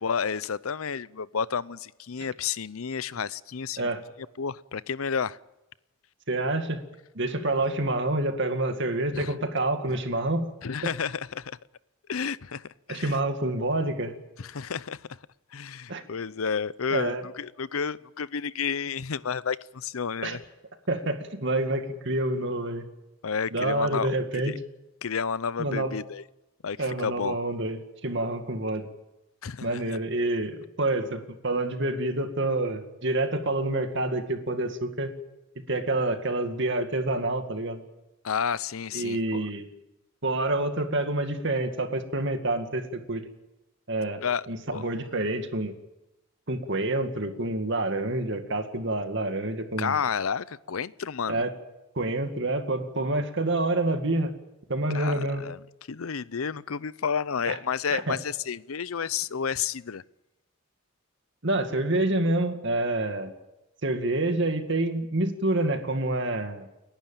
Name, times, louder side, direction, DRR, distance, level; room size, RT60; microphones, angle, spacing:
voice 1, 0.0-3.9 4.4-5.4 7.6-7.7 9.1-9.3 10.6-11.6 12.1-13.2 14.4-15.0 15.5-20.4 23.2-24.6 25.0-26.2 26.6-27.4 29.4-29.8 38.2-39.5 44.2-44.8 49.8-51.4 54.9-55.6 55.9-60.0, left 6 dB, 85° left, 0.6 m, -31 dB
voice 2, 6.3-6.8 7.1-10.5 12.9-14.1 15.9-16.0 16.9-17.2 20.2-20.4 20.9-22.9 23.5-24.5 25.6-25.9 26.8-28.9 29.6-35.1 35.7-37.8 38.9-39.7 40.2-43.2 43.9-44.2 44.5-45.7 46.5-49.9 51.3-51.5 52.0-54.3 54.7-55.4 57.5-57.6 57.9-58.2 61.4-63.3 63.8-66.7, right 2 dB, 60° right, 2.2 m, -27 dB
29.5 x 11.5 x 9.0 m
head